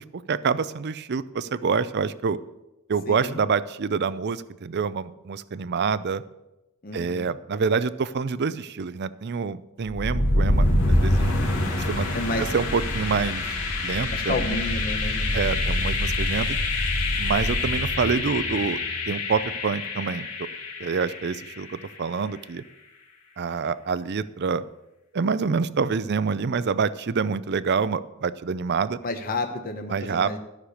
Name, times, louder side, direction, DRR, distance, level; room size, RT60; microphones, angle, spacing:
voice 1, 0.0-2.4 2.9-6.2 6.9-11.3 11.7-12.1 12.5-13.6 13.8-14.4 15.3-16.6 17.2-18.8 19.1-20.3 20.8-22.6 23.4-24.6 25.1-29.0 29.9-30.4, right 5 dB, 50° right, 16 dB, 0.5 m, -26 dB
voice 2, 3.1-3.4 6.8-7.3 12.1-12.5 14.1-15.7 29.0-30.4, left 2 dB, 40° left, 5 dB, 0.9 m, -31 dB
sound 1, 9.9-21.7, left 2 dB, 80° left, 2.2 m, -25 dB
13.0 x 6.6 x 6.5 m, 0.95 s
head